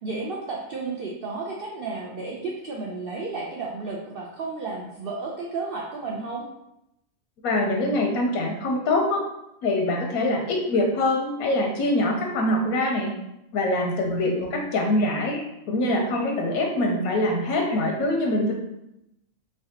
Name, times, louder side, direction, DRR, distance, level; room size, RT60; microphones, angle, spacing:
voice 1, 0.0-6.5 14.1-14.5, right 3 dB, 75° right, -2 dB, 0.5 m, -33 dB
voice 2, 7.4-9.2 9.6-13.1 13.5-18.5, left 1 dB, 90° left, 1 dB, 1.1 m, -24 dB
3.4 x 3.3 x 2.7 m, 0.85 s
omnidirectional pair, 1.5 m